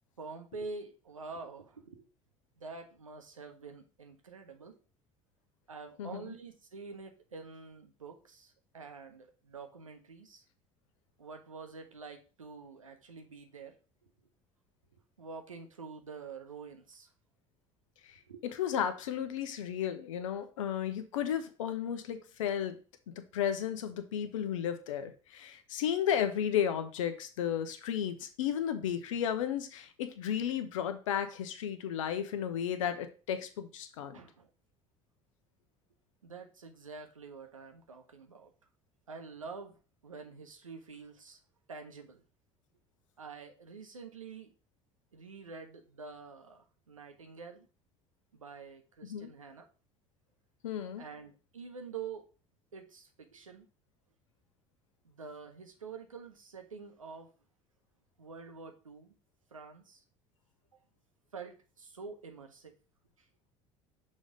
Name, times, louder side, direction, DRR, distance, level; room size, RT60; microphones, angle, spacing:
voice 1, 0.2-2.1 2.6-4.8 5.7-10.4 11.2-13.8 14.0-14.1 14.9-17.1 18.3-18.4 34.1-34.5 36.2-38.5 39.1-41.4 41.7-42.2 43.2-44.5 45.1-47.7 48.3-49.7 51.0-52.3 52.7-53.7 55.0-57.3 58.2-59.1 59.5-60.0 61.3-62.7 63.2-63.3, right 4 dB, 90° right, 5 dB, 0.9 m, -47 dB
voice 2, 6.0-6.4 18.6-22.8 23.1-34.2 49.0-49.3 50.6-51.0, left 9 dB, 75° left, 9 dB, 0.9 m, -33 dB
6.3 x 3.2 x 5.1 m, 0.36 s
figure-of-eight pair, 65°, 17 cm